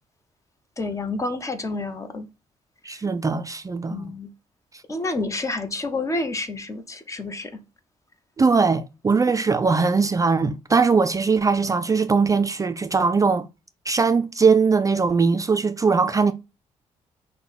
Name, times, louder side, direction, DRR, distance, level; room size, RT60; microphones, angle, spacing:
voice 1, 0.8-2.3 2.9-3.0 3.9-4.3 4.9-7.6, left 2 dB, 25° left, 0.8 m, -29 dB
voice 2, 2.8-4.1 8.4-13.5 13.9-16.3, right 4 dB, 25° right, 0.4 m, -20 dB
5.5 x 2.2 x 4.0 m
supercardioid pair, 70°, 13 cm